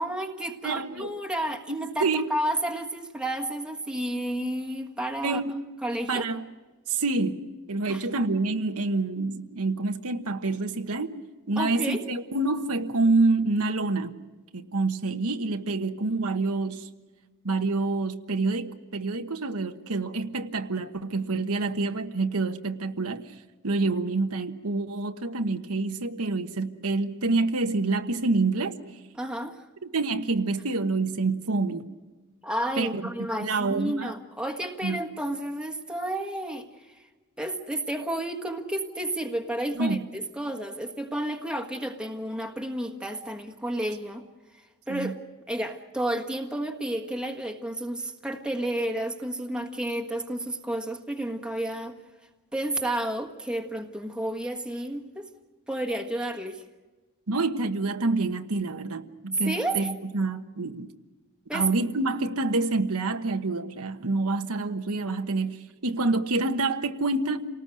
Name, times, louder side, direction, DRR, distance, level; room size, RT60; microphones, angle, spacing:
voice 1, 0.0-5.4 5.8-6.3 7.9-8.0 11.5-12.0 29.1-29.7 32.4-37.0 37.4-44.2 44.5-45.2 45.5-52.0 52.5-55.3 55.7-56.6 59.4-59.9 61.5-61.7, right 1 dB, 5° right, 3 dB, 1.5 m, -31 dB
voice 2, 0.6-1.1 1.7-2.3 5.2-5.5 6.1-6.4 6.9-7.4 7.7-11.2 11.5-14.2 14.5-16.9 17.4-23.3 23.6-28.8 29.8-31.8 32.8-33.0 33.4-34.1 34.8-35.0 39.7-40.0 44.9-45.1 57.3-60.9 61.5-65.6 65.8-67.5, right 3 dB, 85° right, 6 dB, 1.3 m, -27 dB
28.5 x 19.0 x 6.4 m, 1.2 s
head